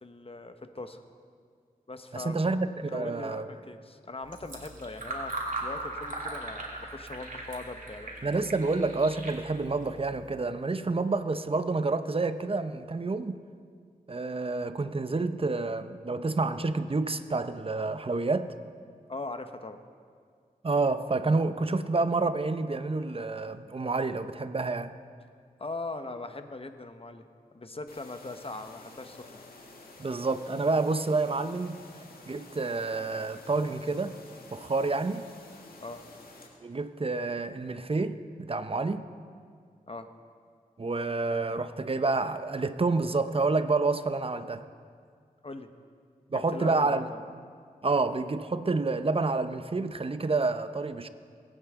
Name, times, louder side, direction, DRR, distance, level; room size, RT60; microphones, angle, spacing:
voice 1, 0.0-1.0 1.9-2.4 2.9-8.1 19.1-19.8 25.6-27.3 27.5-29.4 35.8-36.0 39.9-40.1 45.4-45.7 46.3-47.3, left 2 dB, 40° left, 8 dB, 1.1 m, -40 dB
voice 2, 2.1-3.5 8.2-13.4 14.1-18.5 20.6-25.0 30.0-31.8 32.3-34.2 34.5-35.3 36.6-39.1 40.8-44.6 46.3-47.1 47.8-51.1, right 3 dB, 40° right, 11 dB, 0.8 m, -28 dB
Fill (with liquid), 4.2-10.4, right 2 dB, 60° right, 2.5 m, -39 dB
sound 1, 27.9-36.5, left 2 dB, 80° left, 1.9 m, -50 dB
22.0 x 9.0 x 3.7 m, 2.1 s
cardioid pair, 40°, 15 cm